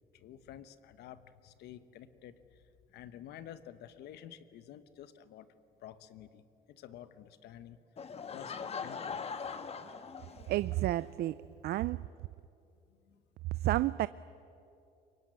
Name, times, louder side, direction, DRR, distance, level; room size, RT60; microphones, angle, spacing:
voice 1, 0.1-2.6 2.9-5.5 5.8-7.8 8.3-9.3 13.0-13.2, left 10 dB, 75° left, 13 dB, 1.2 m, -51 dB
Laughter / Crowd, 8.0-10.8, left 6 dB, 35° left, 1.5 m, -41 dB
voice 2, 10.5-12.1 13.6-14.1, right 15 dB, 70° right, 17 dB, 0.5 m, -31 dB
24.0 x 22.0 x 9.8 m, 2.7 s
cardioid pair, 110°, 17 cm